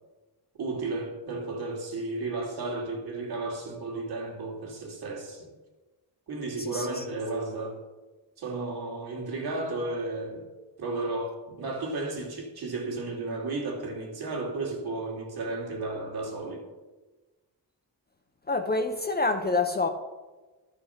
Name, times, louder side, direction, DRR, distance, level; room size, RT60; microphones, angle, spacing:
voice 1, 0.6-5.5 6.3-7.8 8.4-10.5 10.8-16.6, right 2 dB, 60° right, 2.4 m, -33 dB
voice 2, 6.6-7.0 18.5-19.9, left 3 dB, 25° left, 0.5 m, -27 dB
12.5 x 5.0 x 5.6 m
wide cardioid pair, 160°, 42 cm